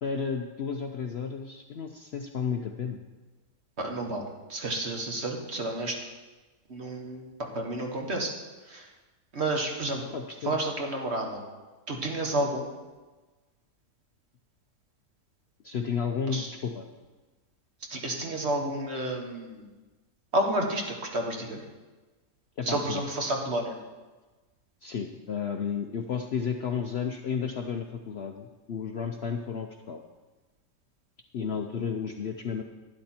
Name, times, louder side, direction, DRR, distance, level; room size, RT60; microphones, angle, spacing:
voice 1, 0.0-3.0 10.1-10.6 15.6-16.9 22.6-23.0 24.8-30.0 31.3-32.6, left 6 dB, 55° left, 4 dB, 0.7 m, -32 dB
voice 2, 3.8-6.0 6.7-8.3 8.7-8.9 9.3-10.1 10.4-11.4 11.9-12.7 16.3-16.5 17.9-19.7 20.3-21.6 22.6-23.8, right 1 dB, 45° right, 1 dB, 1.6 m, -30 dB
12.0 x 10.5 x 4.4 m, 1.2 s
omnidirectional pair, 1.6 m